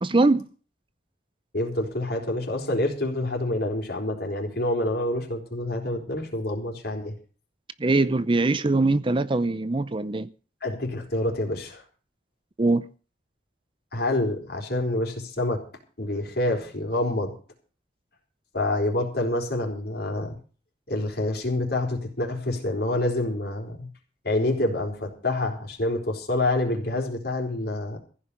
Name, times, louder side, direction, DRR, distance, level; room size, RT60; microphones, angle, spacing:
voice 1, 0.0-0.5 7.8-10.3 12.6-12.8, right 2 dB, 30° right, 0.6 m, -22 dB
voice 2, 1.5-7.2 10.6-11.8 13.9-15.6 16.0-17.3 18.5-20.4 20.9-23.9 24.2-28.0, left 1 dB, 60° left, 4.2 m, -27 dB
15.0 x 5.7 x 9.9 m
head